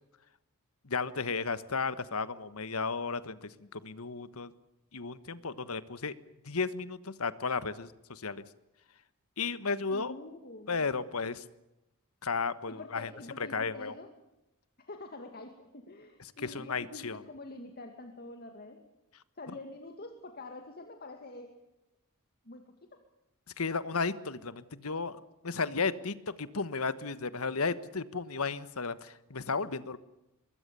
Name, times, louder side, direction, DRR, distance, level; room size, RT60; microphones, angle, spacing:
voice 1, 0.8-4.5 4.9-6.1 6.4-8.4 9.4-10.1 10.7-11.4 12.2-13.1 13.5-13.9 16.4-17.2 23.6-30.0, left 4 dB, 80° left, 14 dB, 1.4 m, -34 dB
voice 2, 9.9-10.8 12.7-14.1 14.8-18.8 19.4-21.6 22.4-23.1 29.7-30.0, left 2 dB, 45° left, 5 dB, 2.3 m, -46 dB
24.0 x 21.5 x 6.9 m, 0.93 s
head